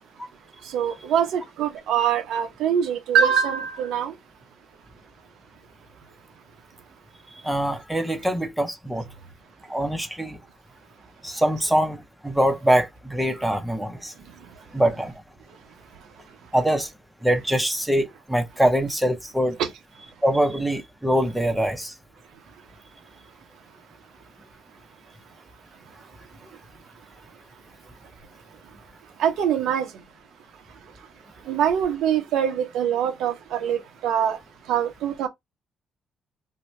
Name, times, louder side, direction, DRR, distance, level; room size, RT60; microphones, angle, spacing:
voice 1, 0.7-4.1 19.6-19.7 29.2-29.9 31.5-34.4 34.7-35.3, right 8 dB, 85° right, 0.7 m, -23 dB
voice 2, 7.4-9.0 9.7-10.4 11.2-12.0 12.2-14.1 14.7-15.1 16.5-16.9 17.2-19.6 20.2-21.9, right 1 dB, 5° right, 0.7 m, -23 dB
2.7 x 2.2 x 3.1 m
cardioid pair, 90°, 0 cm